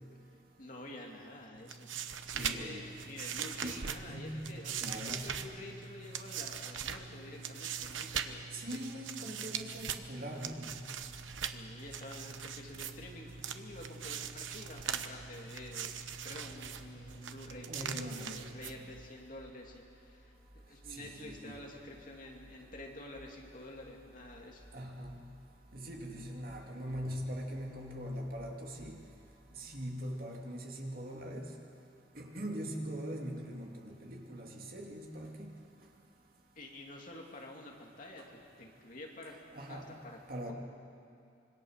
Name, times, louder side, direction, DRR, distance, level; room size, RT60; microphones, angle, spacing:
voice 1, 0.6-1.9 2.3-8.4 8.9-9.0 11.4-15.9 16.2-24.7 36.6-39.3 39.7-40.2, left 1 dB, 40° left, 0 dB, 2.9 m, -49 dB
sound 1, 1.5-19.1, right 7 dB, 80° right, 1.0 m, -41 dB
voice 2, 2.4-2.9 3.6-4.3 4.8-5.3 8.5-10.7 17.7-18.4 20.9-21.6 24.7-25.2 25.7-29.0 29.5-31.5 32.1-35.5 39.5-39.9 40.3-40.5, equal, 50° right, 0 dB, 2.7 m, -41 dB
sound 2, 10.5-29.9, equal, 5° left, 2.0 m, -60 dB
26.0 x 23.0 x 6.7 m, 2.6 s
head